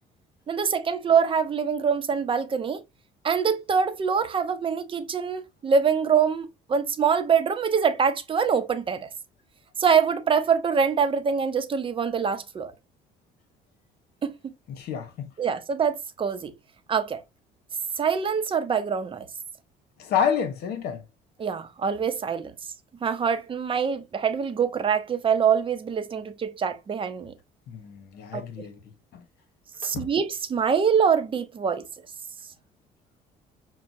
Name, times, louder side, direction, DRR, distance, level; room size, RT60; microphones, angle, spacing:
voice 1, 0.5-2.8 3.2-9.1 9.8-12.7 14.2-14.3 15.4-16.5 16.9-17.2 18.0-19.3 21.4-22.5 23.0-27.3 28.3-28.4 29.8-31.9, right 6 dB, 30° right, 0.6 m, -24 dB
voice 2, 14.7-15.3 20.0-21.0 27.7-28.8 29.1-29.2 29.8-30.1, left 7 dB, 70° left, 1.0 m, -29 dB
5.7 x 2.2 x 2.6 m
cardioid pair, 110°, 17 cm